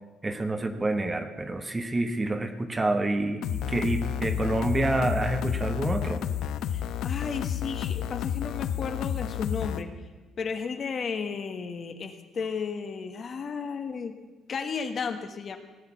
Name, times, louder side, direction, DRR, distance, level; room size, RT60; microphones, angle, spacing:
voice 1, 0.2-6.2, right 2 dB, 15° right, 8 dB, 1.0 m, -28 dB
sound 1, 3.4-9.8, left 9 dB, 75° left, 0.8 m, -31 dB
voice 2, 6.7-9.9 10.4-14.1 14.5-15.6, left 5 dB, 40° left, 7 dB, 1.4 m, -33 dB
17.5 x 6.6 x 9.5 m, 1.2 s
cardioid pair, 135°, 0 cm